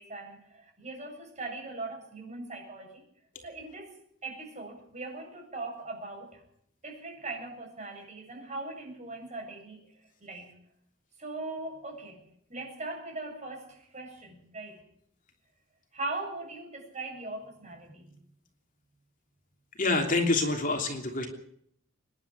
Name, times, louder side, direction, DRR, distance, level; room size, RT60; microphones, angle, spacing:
voice 1, 0.0-3.0 3.4-6.4 6.8-10.6 11.2-12.2 12.5-14.8 15.9-18.2, right 2 dB, 35° right, 2 dB, 7.9 m, -40 dB
voice 2, 19.8-21.3, left 3 dB, 40° left, 4 dB, 3.1 m, -26 dB
26.5 x 11.0 x 9.5 m, 0.68 s
head